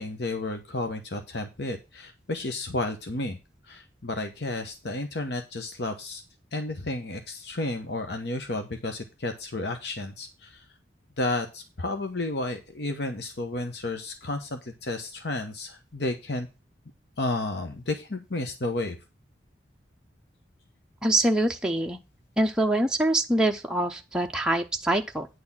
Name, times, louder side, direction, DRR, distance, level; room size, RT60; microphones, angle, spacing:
voice 1, 0.0-3.4 3.7-6.2 6.5-10.6 11.2-16.5 17.2-19.0, left 2 dB, 60° left, 6 dB, 1.1 m, -32 dB
voice 2, 21.0-22.0 22.4-25.3, right 1 dB, 5° right, 2 dB, 0.6 m, -24 dB
9.5 x 4.2 x 7.3 m, 0.27 s
head